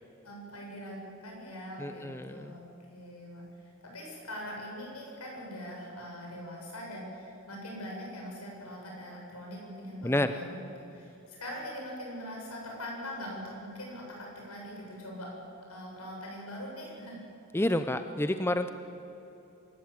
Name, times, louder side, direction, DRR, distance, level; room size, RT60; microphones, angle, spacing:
voice 1, 0.2-2.6 2.9-3.4 3.9-10.6 10.9-15.3 15.7-17.2, equal, 85° left, -1 dB, 7.2 m, -42 dB
voice 2, 1.8-2.5 10.0-10.3 17.5-18.7, left 1 dB, 10° left, 9 dB, 0.6 m, -29 dB
25.5 x 14.0 x 8.9 m, 2.9 s
head